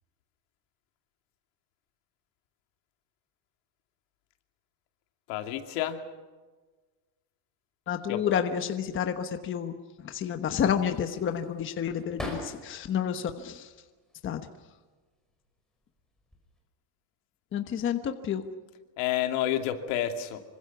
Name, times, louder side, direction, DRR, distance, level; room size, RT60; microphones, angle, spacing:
voice 1, 5.3-6.0 8.1-8.2 19.0-20.4, left 11 dB, 70° left, 6 dB, 2.7 m, -29 dB
voice 2, 7.9-9.7 10.0-13.7 14.2-14.4 17.5-18.4, left 8 dB, 25° left, 7 dB, 1.1 m, -30 dB
sound 1, 10.4-12.9 13.4-14.2 15.1-15.5 15.8-16.6, left 1 dB, ahead, 5.5 m, -43 dB
26.0 x 24.5 x 6.0 m, 1.3 s
cardioid pair, 165°, 50 cm